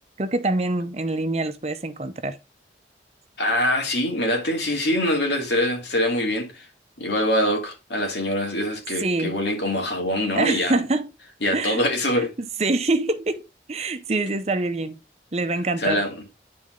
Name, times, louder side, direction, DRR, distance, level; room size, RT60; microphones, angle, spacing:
voice 1, 0.2-2.4 9.0-9.3 10.4-11.1 11.5-11.8 12.2-12.3 12.6-13.4 13.7-15.0 15.3-16.0, right 2 dB, 35° right, 0.7 m, -25 dB
voice 2, 3.4-6.7 7.0-10.8 11.4-12.3 15.8-16.2, left 1 dB, 80° left, 2.6 m, -24 dB
10.5 x 4.3 x 3.7 m
head